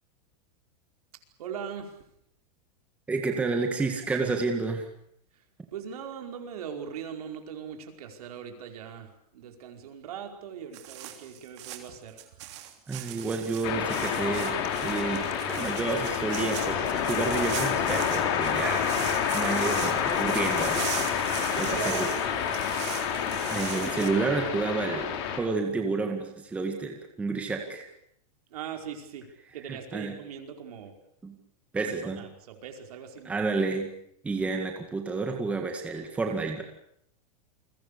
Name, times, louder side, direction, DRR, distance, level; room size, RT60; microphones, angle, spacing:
voice 1, 1.4-1.9 5.7-12.2 21.2-22.1 28.5-29.3 29.5-31.0 31.8-33.4, right 7 dB, 65° right, 4 dB, 5.1 m, -40 dB
voice 2, 3.1-4.8 12.9-19.0 19.3-20.8 21.6-22.1 23.5-25.1 25.4-27.9 29.7-30.2 31.2-31.4 31.7-32.2 33.3-33.9 34.2-36.6, right 3 dB, 5° right, 3 dB, 1.9 m, -30 dB
sound 1, 10.7-24.1, right 13 dB, 45° right, 3.2 m, -40 dB
sound 2, 13.6-25.4, left 8 dB, 40° left, 4.3 m, -28 dB
29.5 x 22.0 x 6.9 m, 0.72 s
supercardioid pair, 175°, 20 cm